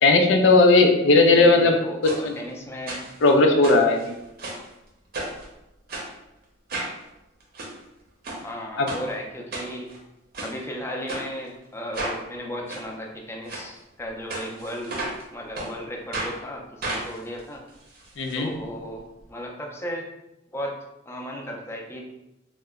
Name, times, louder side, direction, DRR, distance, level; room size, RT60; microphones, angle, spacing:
voice 1, 0.0-1.8 2.0-2.4 3.2-4.1 8.8-8.9 18.2-18.5, left 3 dB, 75° left, 4 dB, 0.4 m, -17 dB
voice 2, 1.1-3.0 8.4-9.9 10.4-15.0 15.3-17.6 18.3-20.1 20.5-20.7 21.1-22.0, equal, 15° left, 0 dB, 0.4 m, -35 dB
sound 1, 2.0-2.2 2.9-3.3 3.6-4.7 5.1-5.5 5.9-6.1 6.7-7.0 7.4-7.7 8.2-8.4 8.9-9.0 9.5-10.0 10.3-10.5 11.1-11.3 11.9-12.2 12.7-12.8 13.5-13.7 14.3-15.2 15.6-15.7 16.1-16.3 16.8-18.4 18.6-18.7 19.0-19.1, right 2 dB, 50° right, 0.6 m, -33 dB
2.9 x 2.1 x 3.5 m, 0.91 s
head